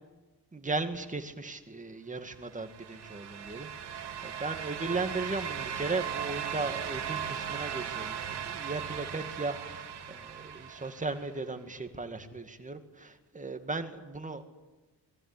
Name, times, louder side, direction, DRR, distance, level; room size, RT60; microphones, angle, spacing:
voice 1, 0.5-14.4, right 3 dB, 20° right, 7 dB, 2.2 m, -36 dB
sound 1, 2.4-11.3, right 8 dB, 75° right, 3.0 m, -38 dB
26.5 x 22.0 x 9.9 m, 1.2 s
wide cardioid pair, 170°, 40 cm